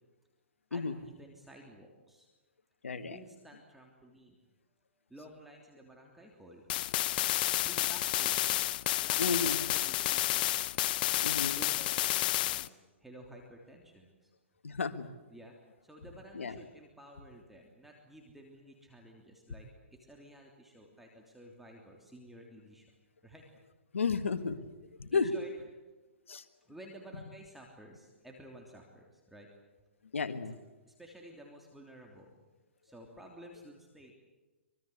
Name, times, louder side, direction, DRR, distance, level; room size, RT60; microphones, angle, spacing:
voice 1, 0.7-2.3 3.1-4.4 5.1-6.6 7.6-8.5 9.0-9.2 9.6-10.7 11.5-14.3 15.3-15.5 15.8-22.9 23.2-23.4 24.3-24.4 25.1-25.5 26.6-29.5 30.8-32.4 32.8-34.1, right 1 dB, 5° right, 0 dB, 3.2 m, -53 dB
voice 2, 2.8-3.2 9.2-9.6 11.2-11.6 14.6-15.1 16.3-16.6 23.9-24.6 25.0-25.3 26.3-26.4 30.1-30.6, left 5 dB, 90° left, 10 dB, 1.9 m, -32 dB
sound 1, 6.7-12.7, left 15 dB, 45° left, 0.9 m, -30 dB
25.5 x 23.5 x 8.2 m, 1.2 s
hypercardioid pair, 140°, 7 cm